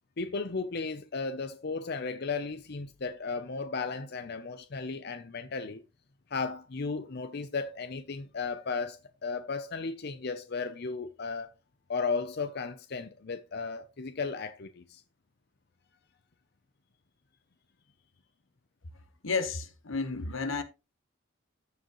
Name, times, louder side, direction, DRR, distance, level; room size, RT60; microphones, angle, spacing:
voice 1, 0.2-5.8 6.3-11.5 11.9-15.0, left 4 dB, 55° left, 0.6 m, -35 dB
voice 2, 19.2-20.6, left 4 dB, 80° left, 1.2 m, -31 dB
15.0 x 5.0 x 3.0 m
head